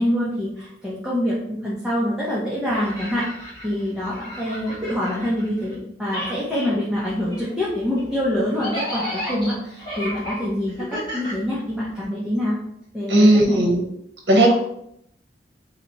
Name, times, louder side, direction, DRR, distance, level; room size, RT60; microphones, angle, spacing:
voice 1, 0.0-12.6 12.9-13.6, left 1 dB, 5° right, -7 dB, 0.8 m, -25 dB
Children's Toys Laughing, 2.7-5.8 6.0-12.0, equal, 25° left, 1.4 m, -34 dB
voice 2, 13.1-13.8 14.3-14.5, right 1 dB, 70° right, 0 dB, 0.9 m, -15 dB
3.2 x 2.9 x 4.0 m, 0.73 s
head